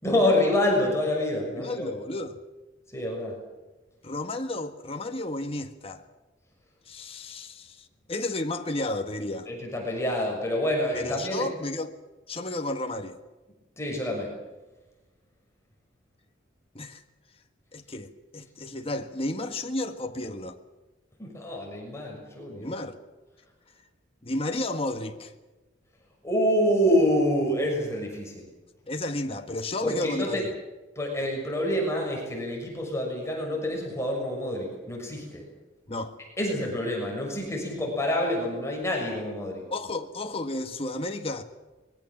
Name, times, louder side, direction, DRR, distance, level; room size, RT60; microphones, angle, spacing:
voice 1, 0.0-1.9 2.9-3.4 9.5-11.5 13.8-14.3 21.2-22.7 26.2-28.5 29.8-30.4 30.9-35.4 36.4-39.7, left 1 dB, 15° left, 6.3 m, -27 dB
voice 2, 1.6-2.4 4.0-6.0 6.9-9.5 10.9-11.9 12.3-13.2 16.8-17.0 17.7-20.6 22.5-23.0 24.2-25.3 28.9-30.5 35.9-36.1 39.7-41.4, left 2 dB, 30° left, 1.7 m, -32 dB
24.5 x 22.0 x 7.4 m
head